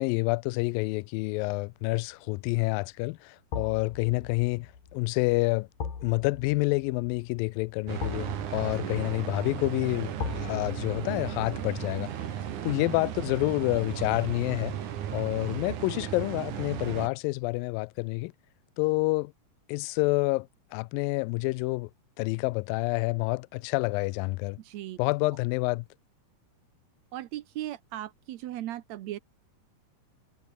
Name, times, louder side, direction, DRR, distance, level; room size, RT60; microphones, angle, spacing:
voice 1, 0.0-5.7 6.0-12.1 12.6-14.8 15.1-18.3 18.8-19.3 19.7-21.9 22.2-24.6 25.0-25.9, left 23 dB, 85° left, 2.0 m, -28 dB
sound 1, 1.7-2.1 3.5-14.5 14.8-15.0, left 6 dB, 60° left, 5.6 m, -42 dB
sound 2, 7.9-17.1, right 10 dB, 55° right, 2.9 m, -35 dB
voice 2, 8.7-9.1 12.3-12.8 24.6-25.0 27.1-29.2, right 13 dB, 85° right, 1.5 m, -38 dB
omnidirectional pair, 4.5 m